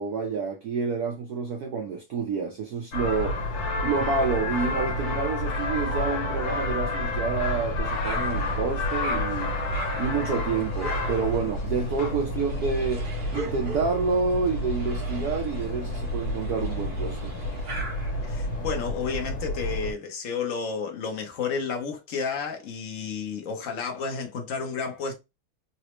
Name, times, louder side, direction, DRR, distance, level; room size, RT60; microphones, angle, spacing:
voice 1, 0.0-3.4 3.8-9.5 10.0-13.1 13.3-17.3, right 5 dB, 75° right, 0.8 m, -28 dB
sound 1, 2.9-19.9, left 2 dB, 55° left, 1.2 m, -30 dB
sound 2, 7.9-18.8, right 3 dB, 45° right, 0.8 m, -41 dB
voice 2, 18.2-25.1, left 5 dB, 75° left, 0.7 m, -31 dB
4.0 x 2.0 x 3.0 m
omnidirectional pair, 2.3 m